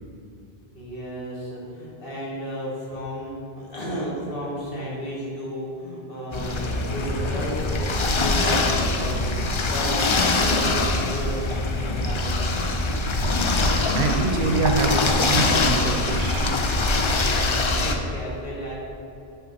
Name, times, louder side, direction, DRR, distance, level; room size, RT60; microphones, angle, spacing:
voice 1, 0.7-11.4 11.7-12.4 17.1-18.7, equal, 65° left, -6 dB, 1.6 m, -33 dB
sound 1, 6.3-17.9, left 2 dB, 45° left, 0.4 m, -23 dB
voice 2, 13.6-16.5, right 4 dB, 65° right, 4 dB, 0.7 m, -26 dB
5.7 x 5.5 x 4.0 m, 2.8 s
omnidirectional pair, 1.0 m